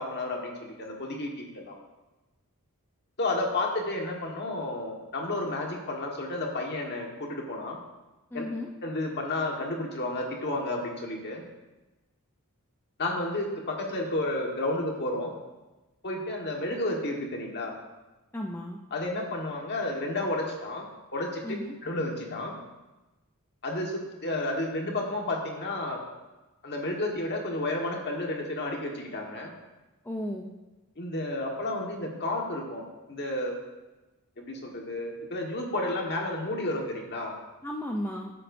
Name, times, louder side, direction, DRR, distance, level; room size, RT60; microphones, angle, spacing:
voice 1, 0.0-1.8 3.2-7.8 8.3-8.4 8.8-11.4 13.0-15.3 16.0-17.8 18.9-21.4 21.8-22.6 23.6-26.0 26.6-29.5 31.0-32.8 33.1-33.5 34.4-37.3, left 2 dB, 50° left, 0 dB, 1.5 m, -31 dB
voice 2, 8.3-8.7 18.3-18.8 21.4-21.7 30.0-30.5 37.6-38.3, left 1 dB, 10° left, 1 dB, 0.5 m, -34 dB
14.0 x 7.6 x 2.7 m, 1.1 s
head